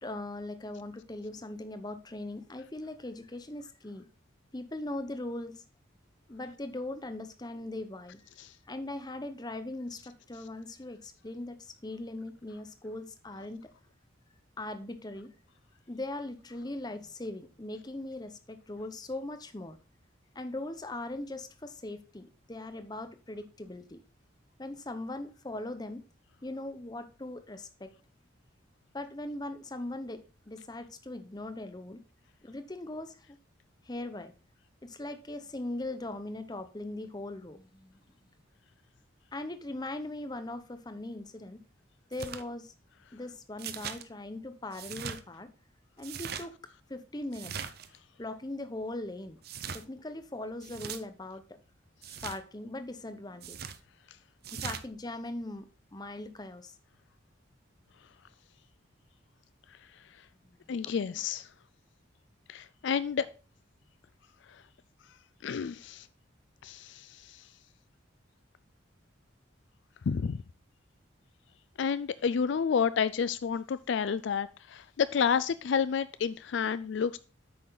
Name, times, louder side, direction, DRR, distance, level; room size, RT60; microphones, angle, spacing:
voice 1, 0.0-4.1 4.5-5.6 6.3-8.2 8.7-13.7 14.6-15.3 15.9-19.8 20.3-24.0 24.6-26.0 26.4-27.9 28.9-32.0 32.4-33.4 33.8-34.3 34.8-38.0 39.3-41.6 42.1-42.7 43.1-45.5 46.0-46.6 46.9-47.5 48.2-49.4 49.7-51.6 52.2-53.6 54.5-56.7 60.8-61.2, left 2 dB, 20° left, 10 dB, 0.8 m, -40 dB
sound 1, 42.1-42.4 43.6-44.0 44.7-45.2 46.0-46.4 47.3-47.9 49.4-49.8 50.6-51.0 52.0-52.4 53.4-53.8 54.4-54.8, right 7 dB, 50° right, 0.7 m, -40 dB
voice 2, 60.7-61.5 62.5-63.3 64.5-64.6 65.4-66.1 66.6-67.4 70.1-70.4 71.8-77.2, left 6 dB, 65° left, 15 dB, 0.4 m, -30 dB
8.6 x 6.1 x 3.9 m, 0.35 s
head